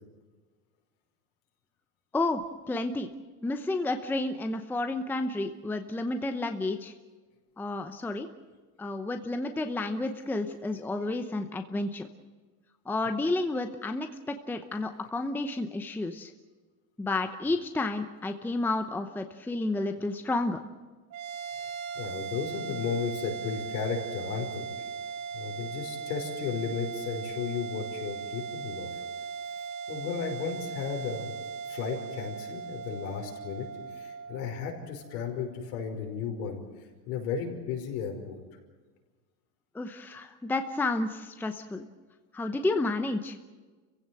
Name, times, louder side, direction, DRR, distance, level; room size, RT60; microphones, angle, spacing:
voice 1, 2.7-3.1 3.4-6.9 7.6-8.3 8.8-12.1 12.9-16.3 17.0-20.6 39.7-41.9 42.3-43.4, left 2 dB, 5° left, 7 dB, 0.8 m, -31 dB
sound 1, 21.1-35.7, right 6 dB, 35° right, 1.3 m, -38 dB
voice 2, 21.6-24.7 25.3-28.9 29.9-31.3 31.7-36.6 37.1-38.4, left 6 dB, 65° left, 3 dB, 5.3 m, -34 dB
28.0 x 16.0 x 7.7 m, 1.3 s
supercardioid pair, 140°, 45 cm